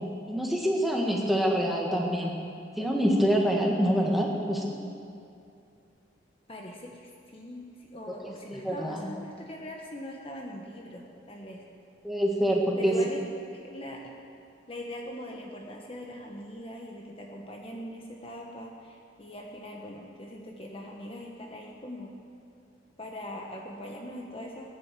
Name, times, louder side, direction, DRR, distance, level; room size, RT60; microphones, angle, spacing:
voice 1, 0.0-2.4 2.8-4.8 8.1-8.2 8.5-9.1 12.0-13.0, equal, ahead, -1 dB, 1.6 m, -26 dB
voice 2, 6.5-11.6 12.8-13.2 13.5-14.1 14.7-22.1 23.0-24.7, equal, 30° left, 0 dB, 1.2 m, -41 dB
18.5 x 10.0 x 7.5 m, 2.5 s
head